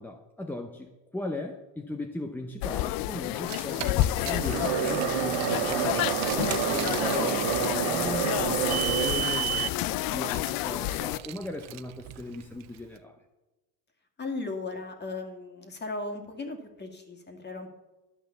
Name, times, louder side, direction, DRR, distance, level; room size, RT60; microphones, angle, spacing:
voice 1, 0.0-6.2 6.7-13.2, left 1 dB, 5° left, 3 dB, 0.8 m, -38 dB
sound 1, 2.6-11.2, left 16 dB, 55° left, 0.5 m, -29 dB
Car, 3.3-12.8, right 16 dB, 40° right, 0.5 m, -36 dB
sound 2, 4.2-9.5, right 11 dB, 65° right, 0.9 m, -29 dB
voice 2, 14.2-17.7, left 3 dB, 25° left, 4 dB, 2.1 m, -36 dB
12.0 x 5.7 x 6.9 m, 1.1 s
supercardioid pair, 110°, 43 cm